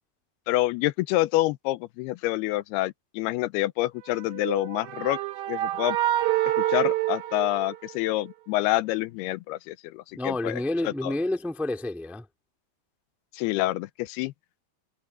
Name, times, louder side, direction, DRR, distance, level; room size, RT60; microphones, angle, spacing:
voice 1, 0.5-5.2 5.5-6.0 6.7-11.1 13.3-14.3, left 17 dB, 90° left, 2.6 m, -27 dB
sound 1, 4.3-8.2, right 14 dB, 70° right, 2.7 m, -27 dB
voice 2, 10.1-12.3, left 2 dB, ahead, 0.9 m, -29 dB
omnidirectional pair, 4.6 m